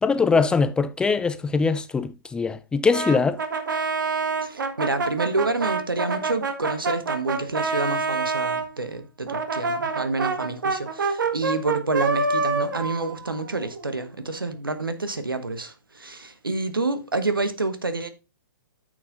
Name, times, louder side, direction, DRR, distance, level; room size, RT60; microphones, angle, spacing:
voice 1, 0.0-3.4, left 4 dB, 10° left, 0.4 m, -22 dB
Brass instrument, 2.9-8.7 9.3-14.0, right 4 dB, 65° right, 1.7 m, -27 dB
voice 2, 4.4-18.1, right 3 dB, 85° right, 1.3 m, -28 dB
9.3 x 6.5 x 3.8 m
figure-of-eight pair, 120°, 11 cm